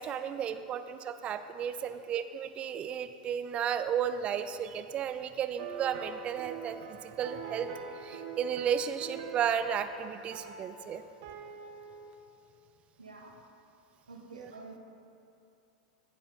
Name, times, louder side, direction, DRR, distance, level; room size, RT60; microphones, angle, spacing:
voice 1, 0.0-7.7 8.0-11.0 14.3-14.5, right 8 dB, 35° right, 11 dB, 0.4 m, -33 dB
sound 1, 5.6-12.1, right 6 dB, 55° right, 0.9 m, -44 dB
voice 2, 13.0-13.3 14.1-14.8, right 3 dB, 85° right, 2 dB, 1.0 m, -49 dB
14.0 x 6.3 x 3.9 m, 2.6 s
figure-of-eight pair, 90°, 3 cm